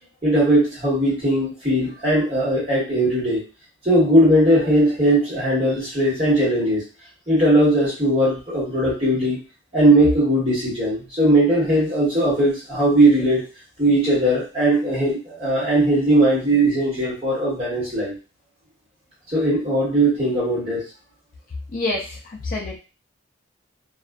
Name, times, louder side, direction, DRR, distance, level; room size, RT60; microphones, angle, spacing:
voice 1, 0.2-3.4 3.8-6.8 7.3-9.4 9.7-13.5 13.8-18.2 19.3-20.8, right 1 dB, 30° right, -8 dB, 1.4 m, -19 dB
voice 2, 21.7-22.8, left 2 dB, 40° left, -3 dB, 0.4 m, -27 dB
2.4 x 2.4 x 2.3 m, 0.33 s
head